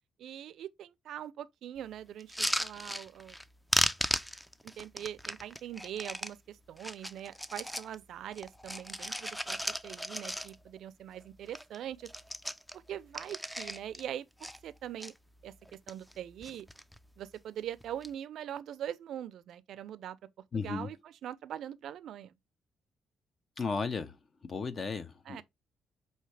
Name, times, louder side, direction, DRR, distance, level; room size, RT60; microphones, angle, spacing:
voice 1, 0.2-3.3 4.8-12.1 12.7-15.1 15.4-16.7 17.2-20.2 20.5-22.3 25.3-25.4, right 10 dB, 75° right, 0.4 m, -42 dB
sound 1, 2.2-3.4 3.7-6.3 6.8-7.9 8.3-10.8 11.1-11.2 11.5-11.8 12.0-14.0 14.4-15.1 15.6-16.2 16.4-17.0 17.8-18.1, equal, 5° left, 0.4 m, -35 dB
voice 2, 20.5-20.9 23.6-24.2 24.4-25.4, left 4 dB, 40° left, 0.7 m, -34 dB
5.6 x 2.8 x 3.2 m
cardioid pair, 90°, 0 cm